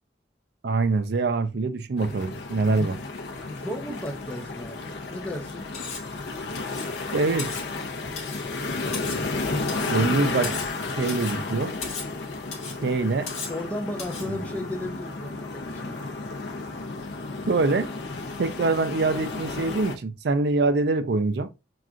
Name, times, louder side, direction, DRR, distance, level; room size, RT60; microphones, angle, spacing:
voice 1, 0.6-3.0 7.1-7.5 9.9-10.5 11.0-11.7 12.8-13.3 17.5-17.9 18.4-21.5, right 3 dB, 60° right, 0.4 m, -24 dB
sound 1, 2.0-20.0, left 3 dB, 65° left, 0.6 m, -33 dB
voice 2, 3.5-5.7 13.5-16.0, left 1 dB, 5° left, 0.6 m, -35 dB
Cutlery silverware, 5.7-6.1 6.6-7.0 7.4-7.7 8.2-8.5 8.9-9.3 9.7-10.0 10.4-10.8 11.1-11.4 11.8-12.1 12.5-12.8 13.3-13.6 14.0-14.3, left 5 dB, 35° left, 1.1 m, -37 dB
5.8 x 2.4 x 2.4 m
head